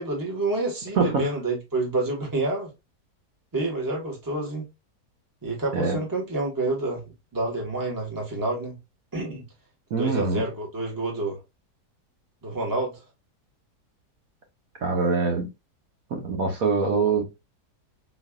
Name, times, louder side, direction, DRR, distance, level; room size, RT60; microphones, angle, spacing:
voice 1, 0.0-2.7 3.5-4.6 5.4-7.0 7.3-8.8 9.1-9.4 10.0-11.4 12.4-13.0, right 2 dB, 15° right, 1.2 m, -28 dB
voice 2, 1.0-1.3 5.7-6.0 9.9-10.4 14.8-15.5 16.1-17.3, right 4 dB, 60° right, 1.3 m, -24 dB
4.3 x 3.2 x 2.3 m
omnidirectional pair, 1.7 m